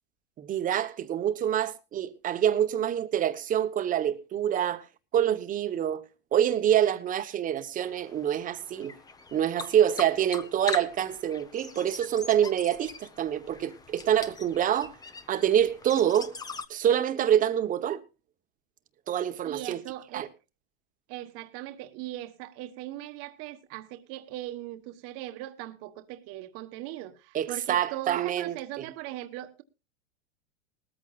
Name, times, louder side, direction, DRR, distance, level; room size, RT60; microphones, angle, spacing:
voice 1, 0.4-4.8 5.1-6.0 6.3-8.9 9.3-15.0 15.3-16.3 16.7-18.0 19.1-19.8 20.1-20.3 27.3-28.8, right 10 dB, 25° right, 1.1 m, -26 dB
sound 1, 7.8-16.6, left 4 dB, 10° left, 0.9 m, -42 dB
voice 2, 19.4-20.3 21.1-29.6, right 15 dB, 45° right, 1.3 m, -39 dB
19.0 x 14.0 x 2.4 m
supercardioid pair, 145°, 33 cm